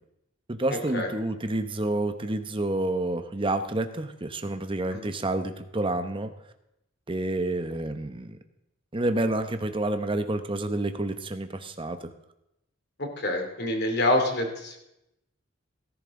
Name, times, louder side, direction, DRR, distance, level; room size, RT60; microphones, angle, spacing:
voice 1, 0.5-6.3 7.1-8.4 8.9-12.0, right 2 dB, 25° right, 8 dB, 0.9 m, -29 dB
voice 2, 13.0-14.8, left 1 dB, 55° left, 3 dB, 2.7 m, -27 dB
17.5 x 11.0 x 3.8 m, 0.84 s
head